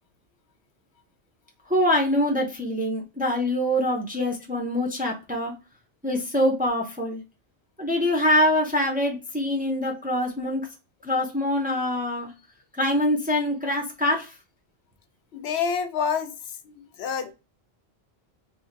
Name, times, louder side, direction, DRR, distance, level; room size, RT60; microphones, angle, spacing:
voice 1, 1.7-5.5 6.0-7.2 7.8-10.7 11.0-12.3 12.8-14.3, left 1 dB, 10° right, 0.5 m, -24 dB
voice 2, 15.3-16.3 16.6-17.3, left 6 dB, 80° left, 0.8 m, -27 dB
2.7 x 2.5 x 3.8 m
omnidirectional pair, 1.1 m